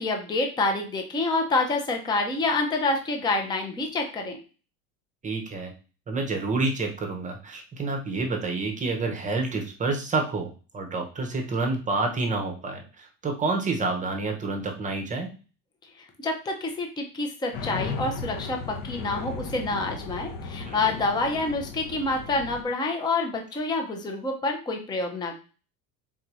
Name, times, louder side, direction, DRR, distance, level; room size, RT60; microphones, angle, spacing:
voice 1, 0.0-4.4 16.0-25.4, left 2 dB, 10° left, 3 dB, 0.6 m, -27 dB
voice 2, 5.2-5.7 6.1-15.3, right 3 dB, 20° right, 3 dB, 0.8 m, -28 dB
sound 1, 17.5-22.6, left 4 dB, 50° left, 0.8 m, -36 dB
3.8 x 2.7 x 4.6 m, 0.35 s
cardioid pair, 150°, 43 cm